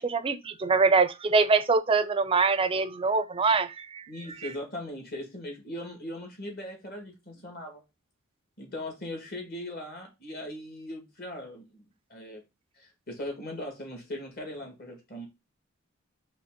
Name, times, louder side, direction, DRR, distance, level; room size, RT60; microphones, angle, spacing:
voice 1, 0.0-4.1, right 4 dB, 25° right, 0.4 m, -24 dB
voice 2, 4.1-7.8 8.6-11.8 12.1-12.4 12.7-15.3, left 1 dB, 45° left, 1.9 m, -39 dB
4.3 x 3.2 x 3.6 m
head